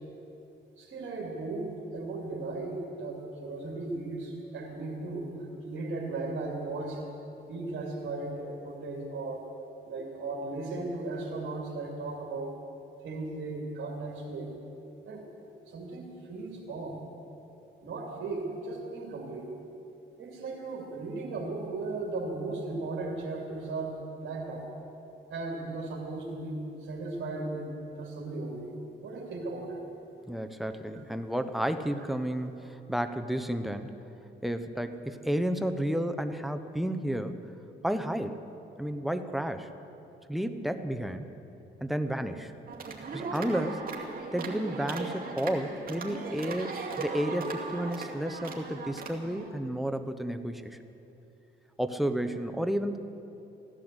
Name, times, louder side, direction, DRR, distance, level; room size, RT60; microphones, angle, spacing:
voice 1, 0.8-5.3 5.6-7.0 7.5-9.4 9.8-12.5 13.0-14.5 15.0-15.2 15.7-17.0 17.8-19.5 20.2-24.7 25.3-28.8 29.0-29.8 30.9-31.0, right 3 dB, 65° right, -2 dB, 2.7 m, -36 dB
voice 2, 30.3-33.9 34.4-37.4 37.8-38.4 38.8-39.7 40.3-41.3 41.8-42.5 43.1-43.8 44.3-50.8 51.8-53.0, right 1 dB, ahead, 8 dB, 1.0 m, -31 dB
sound 1, 42.7-49.5, right 4 dB, 45° right, 2.4 m, -38 dB
15.5 x 11.5 x 8.1 m, 2.9 s
cardioid pair, 75°, 21 cm